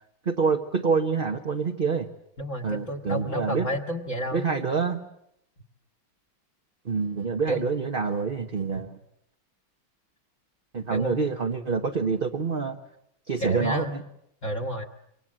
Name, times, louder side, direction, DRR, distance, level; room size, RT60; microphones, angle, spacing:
voice 1, 0.2-2.1 2.6-3.7 4.3-5.0 6.8-9.0 10.7-12.8 13.3-14.0, right 5 dB, 30° right, 3 dB, 1.1 m, -26 dB
voice 2, 2.4-4.5 7.5-7.6 10.9-11.1 13.4-14.0 14.4-14.8, equal, 40° left, 6 dB, 1.6 m, -30 dB
27.0 x 24.5 x 7.6 m, 0.76 s
omnidirectional pair, 2.3 m